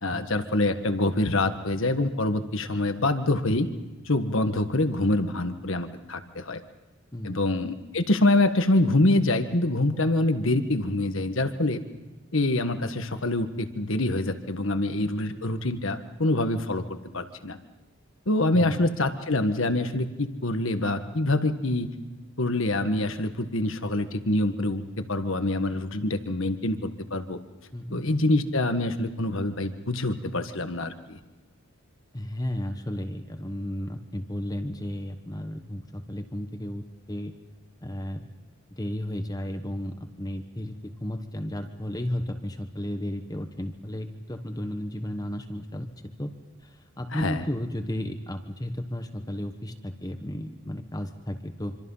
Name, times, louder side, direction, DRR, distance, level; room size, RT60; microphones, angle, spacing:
voice 1, 0.0-3.7 4.0-6.6 7.2-11.8 12.3-17.6 18.3-21.9 22.4-24.8 25.1-27.4 27.9-31.2 47.1-47.4, left 2 dB, 65° left, 9 dB, 1.5 m, -25 dB
voice 2, 18.5-18.8 27.7-28.0 32.1-37.3 37.8-38.3 38.7-45.9 46.2-46.3 46.6-51.8, left 1 dB, 15° left, 6 dB, 1.2 m, -33 dB
26.0 x 25.5 x 5.6 m, 1.1 s
head